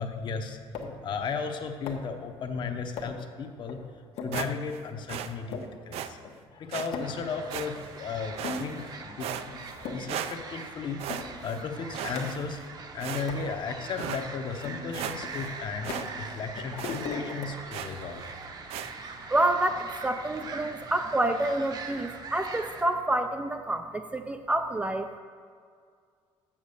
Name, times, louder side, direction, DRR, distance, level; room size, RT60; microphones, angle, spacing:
voice 1, 0.0-6.2 6.5-9.6 9.9-12.6 12.9-18.2, left 5 dB, 45° left, 6 dB, 0.9 m, -35 dB
sound 1, 0.7-1.1 1.9-2.2 3.0-3.3 3.7-3.8 4.2-4.4 4.9-5.0 5.3-5.7 6.2-6.3 6.6-7.2 7.8-7.9 8.3-8.8 9.2-9.4 9.7-10.2 10.5-10.6 11.1-11.3 11.6-12.6 13.3-13.5 14.0-14.1 14.6-16.3 16.6-17.5, left 4 dB, 75° left, 1.2 m, -38 dB
sound 2, 4.3-4.8 5.1-5.3 5.9-6.1 6.7-6.9 7.5-8.0 8.4-8.9 9.2-9.8 10.1-10.7 11.0-11.6 11.9-12.6 13.0-13.5 14.0-14.2 14.6-14.7 14.9-15.5 15.8-16.1 16.3-16.4 16.8-17.1 17.7-18.0 18.7-18.9, right 9 dB, 70° right, 0.5 m, -36 dB
sound 3, 7.0-22.8, right 4 dB, 40° right, 0.8 m, -42 dB
voice 2, 19.3-25.2, right 1 dB, 10° right, 7 dB, 0.4 m, -28 dB
7.3 x 7.2 x 6.6 m, 2.1 s
cardioid pair, 145°, 11 cm